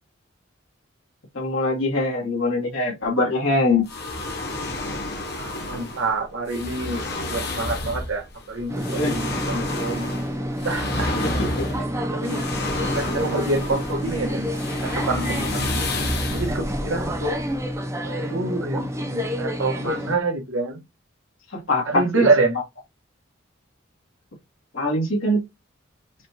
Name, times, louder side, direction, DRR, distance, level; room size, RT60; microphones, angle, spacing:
voice 1, 1.3-3.9 8.9-9.2 11.0-11.9 21.5-22.3 24.7-25.4, left 2 dB, 80° left, 1.7 m, -23 dB
sound 1, 3.9-17.7, left 2 dB, 50° left, 0.8 m, -30 dB
voice 2, 5.4-10.1 10.6-11.1 12.1-12.4 12.9-15.9 16.3-17.4 18.0-20.8 21.8-22.5, right 3 dB, 85° right, 1.2 m, -26 dB
sound 2, 8.7-20.2, equal, 15° right, 0.5 m, -29 dB
5.0 x 2.4 x 2.8 m
head